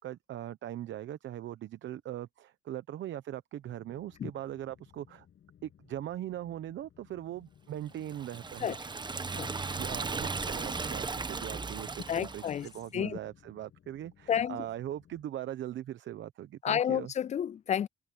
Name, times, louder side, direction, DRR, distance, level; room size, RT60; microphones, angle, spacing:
voice 1, 0.0-5.3 5.6-8.7 9.8-17.1, right 12 dB, 70° right, 0.9 m, -40 dB
sound 1, 3.6-15.2, left 9 dB, 65° left, 7.2 m, -61 dB
Liquid, 8.0-12.7, right 4 dB, 20° right, 1.1 m, -36 dB
voice 2, 12.1-13.2 14.3-14.6 16.6-17.9, left 9 dB, 35° left, 0.4 m, -31 dB
cardioid pair, 90°, 20 cm